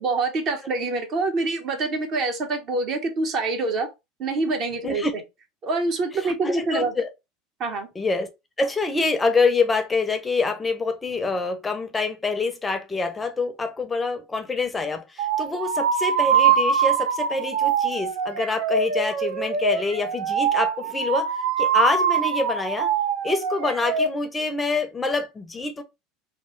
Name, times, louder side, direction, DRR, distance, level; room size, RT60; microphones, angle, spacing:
voice 1, 0.0-3.9 4.2-5.0 5.6-6.9 7.6-7.9, right 3 dB, 50° right, 0.9 m, -25 dB
voice 2, 6.2-7.1 8.0-8.3 8.6-21.3 21.6-22.9 23.2-25.8, left 3 dB, 15° left, 0.5 m, -26 dB
sound 1, 15.2-24.1, right 7 dB, 80° right, 0.6 m, -23 dB
3.0 x 2.0 x 3.0 m
supercardioid pair, 100°, 0 cm